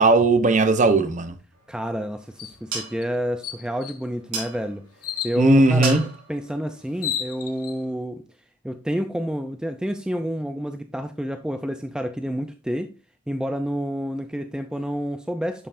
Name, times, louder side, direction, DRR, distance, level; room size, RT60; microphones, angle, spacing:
voice 1, 0.0-1.3 5.4-6.0, right 2 dB, 35° right, 0.7 m, -17 dB
sound 1, 1.5-8.0, right 4 dB, 80° right, 3.6 m, -38 dB
voice 2, 1.7-4.8 5.2-8.2 8.6-12.9 13.3-15.7, equal, 5° right, 0.4 m, -29 dB
sound 2, 2.4-2.6 3.0-3.1 3.4-4.0 5.0-5.4 6.5-6.6 6.9-7.8, left 9 dB, 85° left, 1.1 m, -31 dB
11.0 x 5.6 x 2.5 m
head